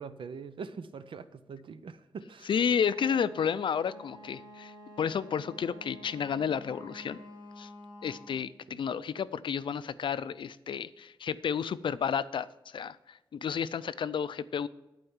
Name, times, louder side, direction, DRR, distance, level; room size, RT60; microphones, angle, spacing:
voice 1, 0.0-2.5 8.7-8.8, right 5 dB, 80° right, 12 dB, 0.6 m, -43 dB
voice 2, 2.5-4.7 5.0-7.2 7.6-7.7 8.0-12.5 12.7-13.0 13.3-14.7, left 7 dB, 70° left, 15 dB, 0.4 m, -31 dB
Wind instrument woodwind instrument, 2.8-8.5, equal, 55° right, 1.9 m, -49 dB
11.0 x 4.7 x 7.2 m, 0.96 s
wide cardioid pair, 160°, 9 cm